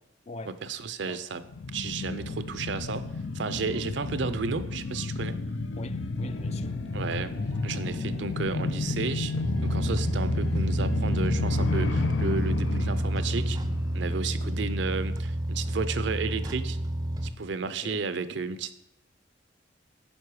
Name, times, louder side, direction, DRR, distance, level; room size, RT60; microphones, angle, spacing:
voice 1, 0.5-1.4 1.7-5.4 6.9-7.3 7.6-9.3 9.6-13.6 13.9-16.8 17.2-18.8, right 4 dB, 65° right, 0.5 m, -33 dB
sound 1, 1.4-14.7 15.0-15.1, left 3 dB, 85° left, 0.6 m, -32 dB
voice 2, 5.8-6.8 14.4-14.6 17.6-18.0, left 2 dB, 35° left, 0.4 m, -41 dB
sound 2, 6.2-11.4, equal, 60° left, 1.4 m, -43 dB
sound 3, 9.4-17.3, right 1 dB, 20° right, 0.5 m, -29 dB
9.5 x 5.4 x 4.8 m
head